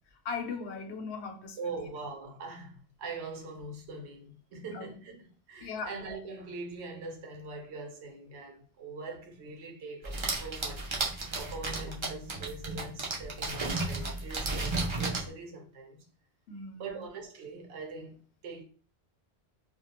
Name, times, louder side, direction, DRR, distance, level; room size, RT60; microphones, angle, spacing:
voice 1, 0.2-1.9 4.7-4.8 5.6-6.0 16.5-16.9, left 4 dB, 85° left, 0.9 m, -38 dB
voice 2, 1.6-10.9 11.3-16.0 16.8-18.6, right 3 dB, 85° right, 0.9 m, -42 dB
sound 1, 10.0-15.3, right 3 dB, 40° right, 0.4 m, -33 dB
2.2 x 2.2 x 2.8 m
omnidirectional pair, 1.1 m